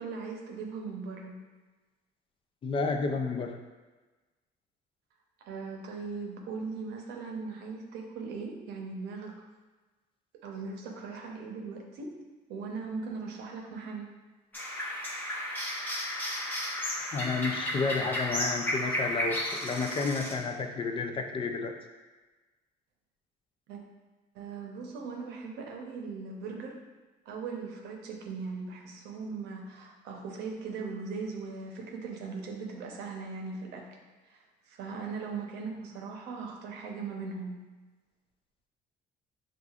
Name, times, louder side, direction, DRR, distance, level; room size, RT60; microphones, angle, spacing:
voice 1, 0.0-1.3 5.5-9.4 10.4-12.2 12.5-14.1 23.7-23.8 24.3-26.8 27.3-33.9 34.3-37.6, right 4 dB, 80° right, 1 dB, 0.8 m, -39 dB
voice 2, 2.6-3.6 17.1-21.7, left 4 dB, 30° left, 4 dB, 0.4 m, -31 dB
sound 1, 14.5-20.3, left 1 dB, 10° left, 0.8 m, -33 dB
6.4 x 2.4 x 2.4 m, 1.2 s
cardioid pair, 110°, 17 cm